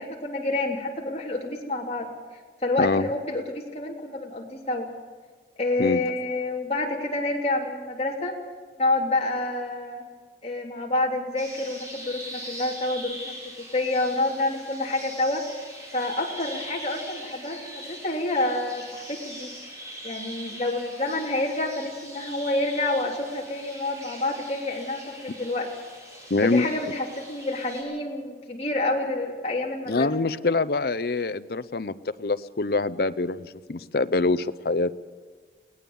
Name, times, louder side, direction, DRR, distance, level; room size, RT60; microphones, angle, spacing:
voice 1, 0.0-2.1 2.6-4.9 5.6-8.3 8.8-10.0 10.4-15.4 15.9-19.5 20.0-25.7 26.4-30.1, left 2 dB, 35° left, -1 dB, 3.3 m, -28 dB
voice 2, 2.8-3.1 5.8-6.0 26.3-26.7 29.9-31.9 32.2-35.0, left 3 dB, 55° left, 14 dB, 0.7 m, -25 dB
sound 1, 11.4-27.8, equal, 20° right, 5.2 m, -42 dB
21.5 x 18.5 x 7.1 m, 1.5 s
head